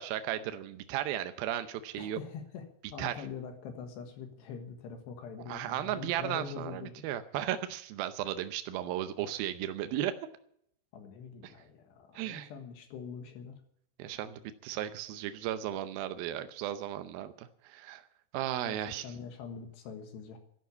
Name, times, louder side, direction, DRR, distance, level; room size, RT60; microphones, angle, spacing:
voice 1, 0.0-2.2 3.0-3.1 5.5-10.1 11.4-11.5 12.2-12.5 14.0-18.0 18.3-19.1, right 12 dB, 85° right, 10 dB, 2.1 m, -35 dB
voice 2, 2.0-2.7 2.9-6.9 10.9-13.6 18.6-20.4, left 6 dB, 70° left, 6 dB, 3.5 m, -44 dB
12.0 x 11.5 x 8.5 m, 0.70 s
omnidirectional pair, 5.3 m